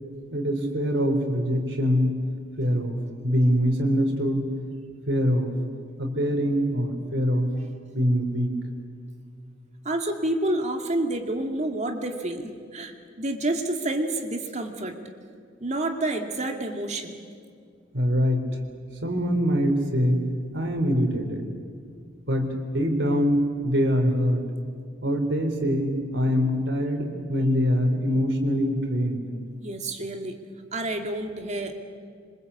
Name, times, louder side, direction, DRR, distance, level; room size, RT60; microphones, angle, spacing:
voice 1, 0.3-2.2 2.6-4.5 5.1-5.6 6.0-7.6 7.9-8.5 17.9-18.4 19.0-20.3 20.5-21.5 22.3-24.4 25.0-29.2, equal, 70° right, 3 dB, 4.1 m, -24 dB
voice 2, 9.8-15.0 15.6-17.2 29.6-30.4 30.7-31.8, right 1 dB, 40° right, 4 dB, 2.4 m, -29 dB
27.5 x 25.0 x 8.6 m, 2.2 s
head